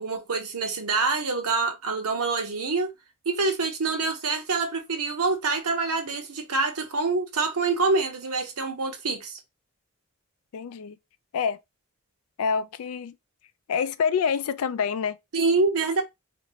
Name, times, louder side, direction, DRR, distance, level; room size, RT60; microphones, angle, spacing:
voice 1, 0.0-2.9 3.3-9.4 15.3-16.0, right 3 dB, 90° right, 0.9 m, -26 dB
voice 2, 10.5-11.0 11.3-11.6 12.4-13.1 13.7-15.2, left 6 dB, 75° left, 0.3 m, -26 dB
2.6 x 2.6 x 3.0 m
head